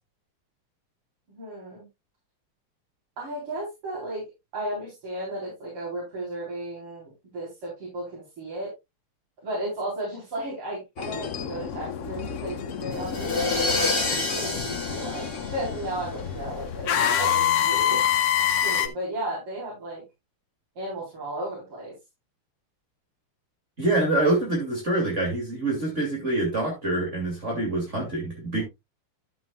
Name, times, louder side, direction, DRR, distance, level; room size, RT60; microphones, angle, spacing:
voice 1, 1.3-1.9 3.2-8.7 9.4-16.9 17.2-18.0 18.6-20.0 20.8-21.9, right 1 dB, 85° right, 4.9 m, -34 dB
sound 1, 11.0-18.9, left 9 dB, 80° left, 0.6 m, -27 dB
sound 2, 12.9-16.2, left 3 dB, 25° left, 4.3 m, -28 dB
voice 2, 23.8-28.6, right 2 dB, 30° right, 2.9 m, -25 dB
12.0 x 7.4 x 2.4 m
omnidirectional pair, 2.4 m